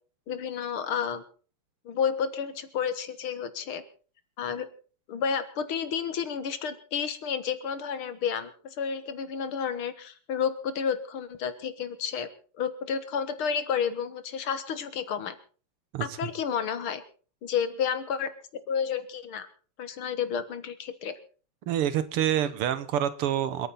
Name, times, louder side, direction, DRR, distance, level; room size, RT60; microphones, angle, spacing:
voice 1, 0.3-1.2 1.9-3.8 4.4-4.7 5.1-12.3 12.6-15.4 16.0-17.0 17.4-18.3 18.7-19.5 19.8-21.2, left 7 dB, 70° left, 11 dB, 2.2 m, -31 dB
voice 2, 15.9-16.3 21.7-23.7, right 10 dB, 85° right, 14 dB, 2.0 m, -27 dB
27.5 x 9.3 x 4.2 m, 0.40 s
omnidirectional pair, 2.4 m